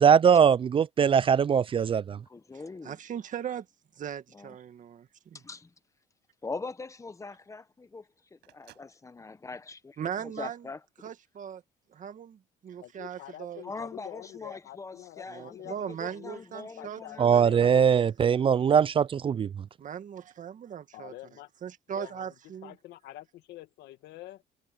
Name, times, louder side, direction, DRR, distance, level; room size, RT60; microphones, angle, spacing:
voice 1, 0.0-2.2 17.2-19.5, right 7 dB, 30° right, 0.4 m, -21 dB
voice 2, 2.3-3.0 4.3-4.6 5.3-5.7 6.4-10.8 13.6-18.1, left 3 dB, 20° left, 1.2 m, -42 dB
voice 3, 2.8-3.7 3.9-5.4 10.0-10.7 11.0-11.6 11.9-13.6 15.3-18.2 19.8-21.1 21.6-22.7, right 9 dB, 50° right, 2.0 m, -39 dB
Telephone, 6.0-10.7, right 17 dB, 85° right, 6.7 m, -64 dB
voice 4, 12.8-16.4 16.8-18.1 20.9-21.5 21.9-22.3 22.6-24.4, left 15 dB, 80° left, 2.1 m, -46 dB
cardioid pair, 110°, 17 cm